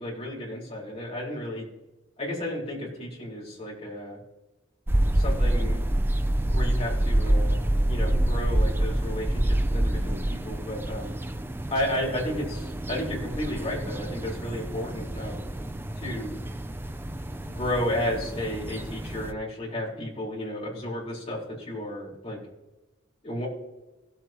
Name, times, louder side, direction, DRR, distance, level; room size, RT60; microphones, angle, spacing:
voice 1, 0.0-1.6 2.2-4.2 5.1-5.9 6.5-11.2 11.7-15.4 16.0-16.3 17.4-22.4 23.2-23.5, left 1 dB, 30° left, -5 dB, 4.5 m, -33 dB
sound 1, 4.9-19.3, right 1 dB, 10° right, 0.5 m, -27 dB
18.0 x 8.1 x 3.0 m, 1.1 s
head